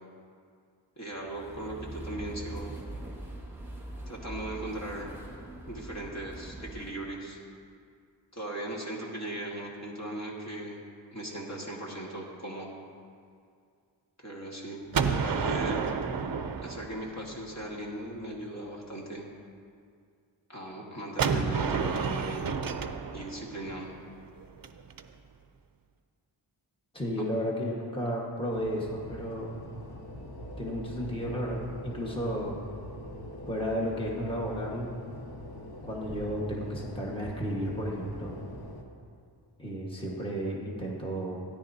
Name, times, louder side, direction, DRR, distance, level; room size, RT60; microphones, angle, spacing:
voice 1, 1.0-2.8 4.1-5.1 5.7-7.4 8.3-10.8 11.1-12.7 14.2-15.9 16.6-19.3 20.5-22.5 23.1-23.9, right 1 dB, 35° left, -3 dB, 1.6 m, -38 dB
sound 1, 1.1-6.9, right 1 dB, 5° right, 1.8 m, -42 dB
Gunshot gunfire, 14.9-17.8 21.2-25.0, right 5 dB, 50° right, 0.6 m, -31 dB
voice 2, 26.9-29.5 30.6-32.6 33.5-34.9 35.8-38.4 39.6-41.4, equal, 10° left, -3 dB, 1.4 m, -33 dB
sound 2, 28.5-38.8, left 1 dB, 55° left, 1.4 m, -43 dB
16.5 x 10.0 x 2.8 m, 2.2 s
wide cardioid pair, 90°, 46 cm